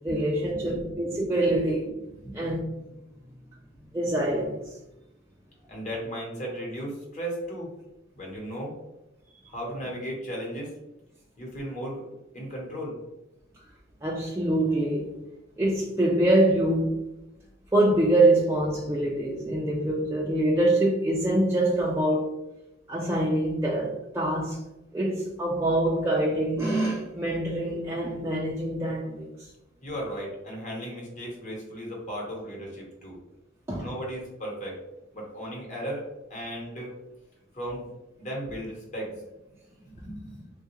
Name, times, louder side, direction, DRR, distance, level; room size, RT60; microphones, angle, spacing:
voice 1, 0.0-1.8 2.3-2.6 3.9-4.8 14.0-15.1 15.6-17.0 17.7-22.3 22.9-24.6 24.9-29.5 33.7-33.9, right 1 dB, 15° right, -4 dB, 0.3 m, -25 dB
voice 2, 0.5-1.0 1.5-1.6 1.9-2.4 5.7-7.7 8.1-8.8 9.5-10.7 11.4-12.0 12.3-13.0 29.8-33.2 33.8-34.8 35.1-36.9 37.5-37.9 38.2-39.2 39.7-40.5, equal, 35° left, -2 dB, 1.0 m, -36 dB
3.4 x 2.3 x 2.9 m, 0.95 s
head